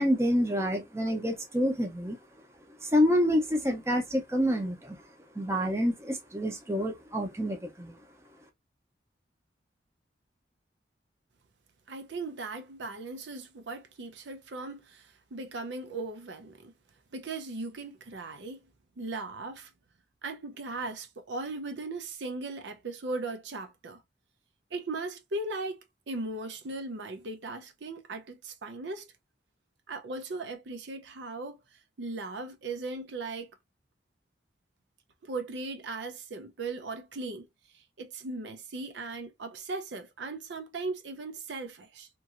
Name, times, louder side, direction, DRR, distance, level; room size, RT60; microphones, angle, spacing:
voice 1, 0.0-2.2 2.8-5.0 5.3-8.0, equal, 15° right, 0.6 m, -27 dB
voice 2, 11.9-16.7 17.1-18.6 19.0-19.7 20.2-24.0 24.7-25.8 26.1-29.1 29.9-31.6 32.0-33.5 35.2-37.5 37.7-42.1, right 3 dB, 80° right, 0.6 m, -38 dB
2.9 x 2.6 x 2.4 m
head